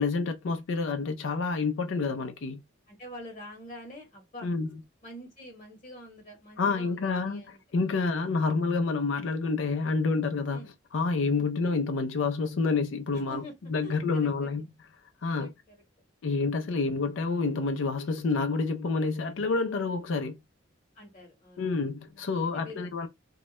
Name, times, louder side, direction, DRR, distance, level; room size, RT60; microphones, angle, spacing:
voice 1, 0.0-2.6 4.4-4.7 6.6-7.4 7.7-10.6 10.9-13.4 13.7-14.6 15.2-15.5 16.2-20.4 21.6-23.1, left 4 dB, 80° left, 0.4 m, -28 dB
voice 2, 2.9-4.5 5.0-7.6 8.4-8.6 10.5-10.7 11.3-11.5 13.1-13.6 13.8-14.6 15.3-15.8 16.6-17.0 20.9-21.7 22.1-22.9, left 1 dB, 45° left, 1.0 m, -46 dB
2.3 x 2.0 x 2.8 m
head